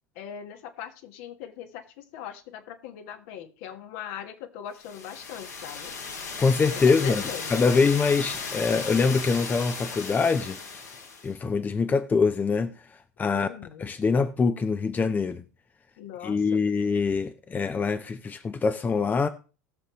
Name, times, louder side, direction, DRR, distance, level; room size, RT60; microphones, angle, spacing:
voice 1, 0.1-6.0 6.9-7.7 13.3-13.9 16.0-16.4, left 9 dB, 55° left, 1.3 m, -40 dB
sound 1, 4.8-11.3, left 4 dB, 75° left, 2.6 m, -36 dB
voice 2, 6.4-7.2 7.5-10.6 11.2-12.7 13.2-13.5 13.8-15.4 16.2-19.3, left 4 dB, 20° left, 0.7 m, -24 dB
19.0 x 6.7 x 3.0 m
figure-of-eight pair, 80°, 9 cm